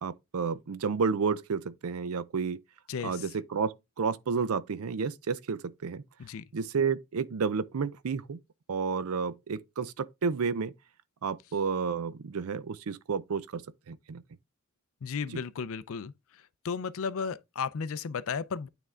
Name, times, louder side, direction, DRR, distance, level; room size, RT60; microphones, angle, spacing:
voice 1, 0.0-2.6 3.0-6.0 6.5-8.4 8.7-10.7 11.2-14.2 15.3-15.4, right 5 dB, 75° right, 0.5 m, -31 dB
voice 2, 2.9-3.3 6.2-6.4 15.0-16.1 16.6-18.7, left 6 dB, 70° left, 0.5 m, -34 dB
9.1 x 3.5 x 3.6 m
head